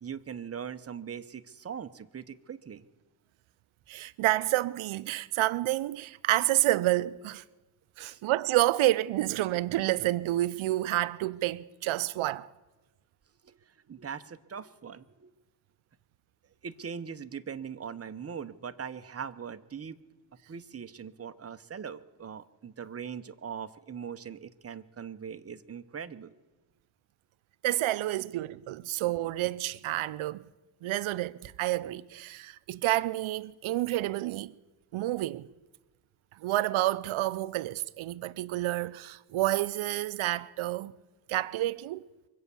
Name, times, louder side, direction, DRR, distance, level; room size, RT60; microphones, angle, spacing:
voice 1, 0.0-2.8 8.0-8.2 13.4-15.3 16.6-20.0 20.5-26.4, right 7 dB, 30° right, 0.8 m, -41 dB
voice 2, 3.9-7.4 8.0-12.5 27.6-30.4 30.8-34.5 34.9-35.5 36.3-40.9 41.3-42.0, right 16 dB, 85° right, 0.5 m, -29 dB
24.0 x 8.2 x 6.9 m
cardioid pair, 80°, 48 cm